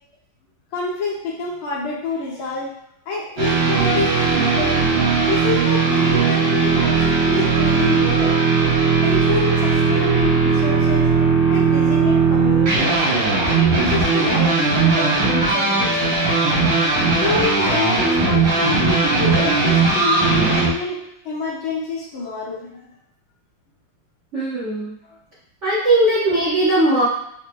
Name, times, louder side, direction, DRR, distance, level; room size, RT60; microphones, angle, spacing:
voice 1, 0.7-2.8 3.1-4.8 5.3-8.3 9.0-11.1 11.5-13.0 13.6-16.2 17.1-22.9 25.0-25.2, left 3 dB, 75° left, -4 dB, 1.7 m, -27 dB
sound 1, 3.4-20.7, right 4 dB, 65° right, 1.8 m, -18 dB
voice 2, 24.3-24.9 25.6-27.0, right 1 dB, 45° right, -9 dB, 1.0 m, -18 dB
5.0 x 2.2 x 3.0 m, 0.75 s
omnidirectional pair, 2.3 m